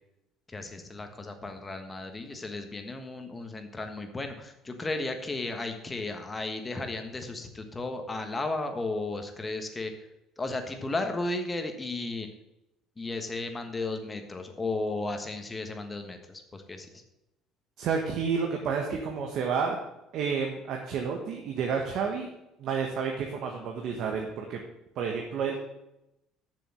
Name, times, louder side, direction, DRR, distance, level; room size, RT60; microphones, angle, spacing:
voice 1, 0.5-9.9 10.4-12.3 13.0-17.0, left 2 dB, 20° left, 6 dB, 1.4 m, -34 dB
voice 2, 17.8-19.8 20.1-22.3 22.6-24.6 25.0-25.6, right 6 dB, 60° right, 2 dB, 1.3 m, -30 dB
7.0 x 6.8 x 7.7 m, 0.91 s
cardioid pair, 115°, 0 cm